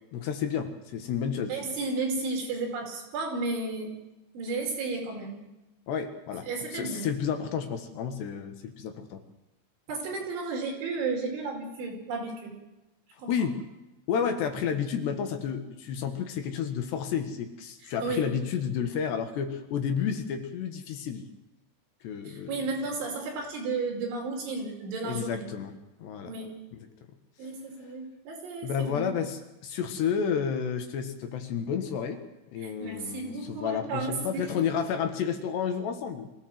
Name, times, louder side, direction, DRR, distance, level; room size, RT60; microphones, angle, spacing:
voice 1, 0.1-1.6 5.9-9.2 13.3-13.6 14.1-21.3 22.0-22.6 25.0-25.7 26.0-26.3 26.7-26.9 28.6-32.2 32.5-36.3, left 7 dB, 65° left, 7 dB, 3.5 m, -31 dB
voice 2, 1.5-3.9 4.3-5.4 6.5-7.1 9.9-12.6 13.2-13.3 18.0-18.3 22.3-25.4 26.3-26.5 27.4-29.1 32.6-34.5, right 3 dB, 70° right, 0 dB, 7.4 m, -33 dB
24.5 x 16.5 x 7.8 m, 0.99 s
omnidirectional pair, 5.6 m